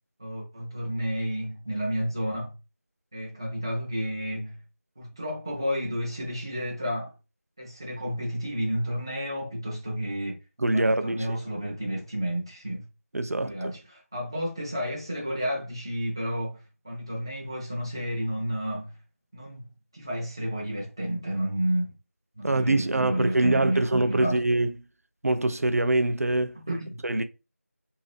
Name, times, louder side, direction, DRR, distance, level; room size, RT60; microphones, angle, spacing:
voice 1, 0.2-2.5 3.1-4.6 5.0-7.1 7.6-10.4 10.7-12.8 13.4-18.9 19.3-19.7 19.9-21.9 22.4-24.4 26.7-27.0, equal, 20° right, 0.6 m, -31 dB
voice 2, 10.6-11.4 13.1-13.7 22.4-24.7 25.2-26.8 27.0-27.2, right 2 dB, 75° right, 0.5 m, -24 dB
2.8 x 2.7 x 3.3 m
figure-of-eight pair, 175°, 8 cm